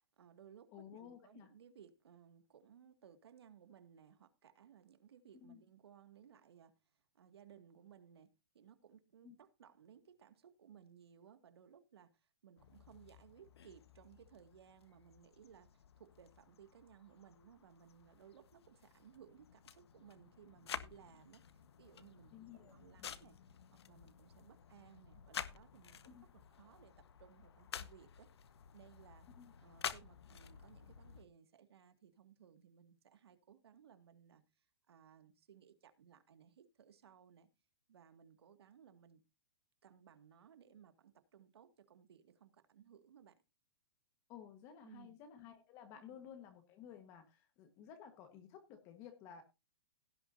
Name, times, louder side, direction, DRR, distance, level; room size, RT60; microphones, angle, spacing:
voice 1, 0.2-6.8 7.1-8.3 8.5-23.4 23.9-26.9 27.2-28.3 28.7-29.3 29.6-37.5 37.9-39.2 39.8-43.4 44.8-45.1 46.0-46.2, right 8 dB, 75° right, 2.2 m, -62 dB
voice 2, 0.7-1.5 5.3-5.6 9.2-9.3 22.3-23.2 26.0-26.2 29.4-29.5 44.3-49.4, left 9 dB, 20° left, 1.6 m, -55 dB
sound 1, 12.6-31.2, left 8 dB, 80° left, 1.4 m, -51 dB
17.0 x 8.6 x 2.8 m
hypercardioid pair, 170°, 13 cm